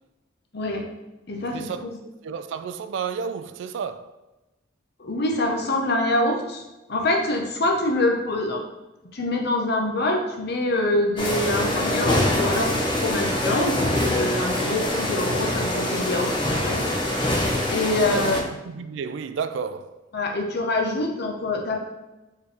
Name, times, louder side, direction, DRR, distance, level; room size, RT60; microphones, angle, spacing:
voice 1, 0.5-0.8 1.3-1.9 5.0-6.6 6.9-8.6 9.1-16.8 17.7-18.4 20.1-21.8, left 2 dB, 60° left, 0.8 m, -25 dB
voice 2, 1.5-1.9 2.2-4.2 14.5-14.8 18.1-18.4 18.6-20.0, right 6 dB, 70° right, 0.3 m, -31 dB
sound 1, 11.2-18.4, left 1 dB, 25° left, 0.7 m, -24 dB
4.6 x 3.4 x 3.3 m
head